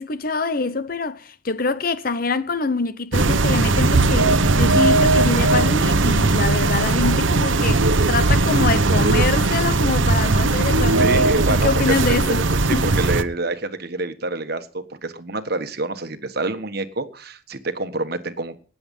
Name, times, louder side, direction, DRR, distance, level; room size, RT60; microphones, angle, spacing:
voice 1, 0.0-12.4 12.7-12.9, left 3 dB, 45° left, 0.8 m, -25 dB
sound 1, 3.1-13.2, right 2 dB, 70° right, 1.0 m, -18 dB
voice 2, 10.7-11.7 12.1-18.6, right 2 dB, 50° right, 1.4 m, -27 dB
19.0 x 7.9 x 5.4 m
head